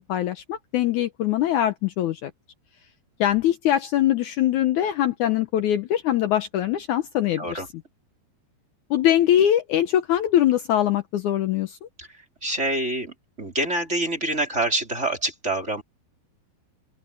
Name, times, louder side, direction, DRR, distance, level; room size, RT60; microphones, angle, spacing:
voice 1, 0.0-2.3 3.2-7.6 8.9-11.8, left 11 dB, 90° left, 1.7 m, -22 dB
voice 2, 12.0-15.8, right 1 dB, 15° right, 3.8 m, -27 dB
open air
omnidirectional pair, 4.7 m